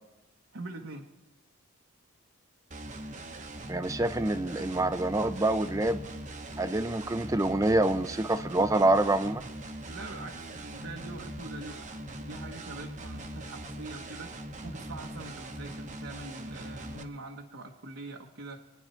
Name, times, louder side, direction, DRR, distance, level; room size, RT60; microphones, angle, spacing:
voice 1, 0.5-1.1 9.9-18.6, right 2 dB, 65° right, 1 dB, 1.1 m, -43 dB
sound 1, 2.7-17.0, right 1 dB, 35° right, 1.0 m, -41 dB
voice 2, 3.7-6.0 6.6-9.5, right 2 dB, 15° right, 11 dB, 0.5 m, -26 dB
25.0 x 10.5 x 4.4 m, 0.95 s
head